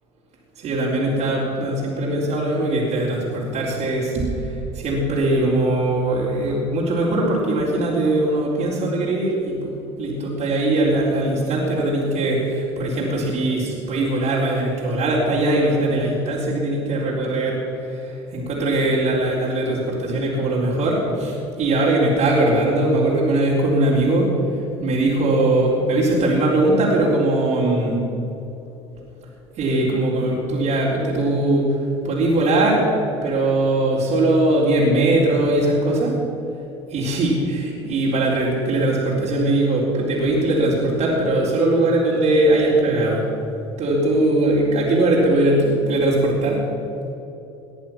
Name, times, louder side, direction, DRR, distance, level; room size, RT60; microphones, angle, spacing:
voice 1, 0.6-28.0 29.6-31.8 32.0-36.2 36.9-43.3 43.8-46.6, right 2 dB, 50° right, -5 dB, 4.1 m, -20 dB
19.5 x 10.5 x 6.1 m, 3.0 s
hypercardioid pair, 70°, 15 cm